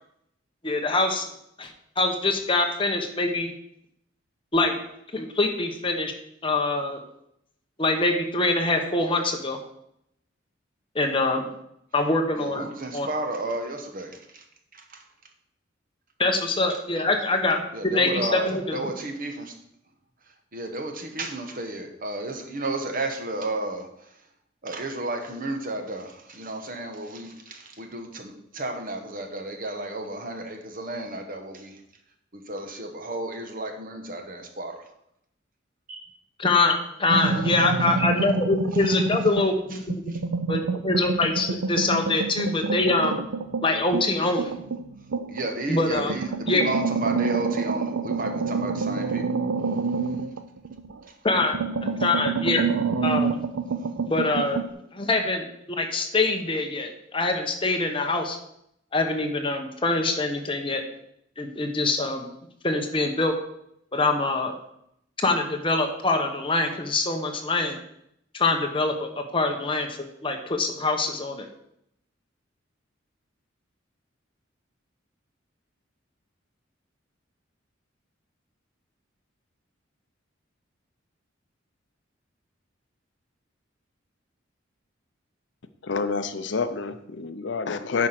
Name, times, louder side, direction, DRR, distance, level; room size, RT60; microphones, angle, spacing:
voice 1, 0.6-1.3 1.6-1.7 2.0-3.5 4.5-4.8 5.1-6.1 6.4-7.0 7.8-9.6 10.9-11.4 11.9-13.1 16.2-17.7 17.9-18.8 36.4-40.0 40.5-43.2 43.6-44.5 45.7-46.2 46.5-46.7 51.2-51.6 51.8-53.4 54.1-54.6 54.9-58.4 58.9-60.8 61.4-62.3 62.6-63.3 63.9-64.5 65.2-67.8 68.3-69.9 70.2-71.5, left 2 dB, 25° left, 1.1 m, -24 dB
voice 2, 12.3-14.4 14.7-15.0 17.7-19.5 20.5-24.2 24.6-31.8 32.3-34.8 35.9-36.0 40.1-40.2 45.3-49.3 50.1-50.2 51.1-51.2, right 2 dB, 45° right, 1.3 m, -33 dB
sound 1, 37.1-39.6 39.9-45.5 46.0-51.0 51.3-54.7, right 4 dB, 85° right, 0.5 m, -28 dB
voice 3, 85.8-88.1, left 4 dB, 60° left, 0.6 m, -28 dB
9.5 x 4.9 x 5.9 m
head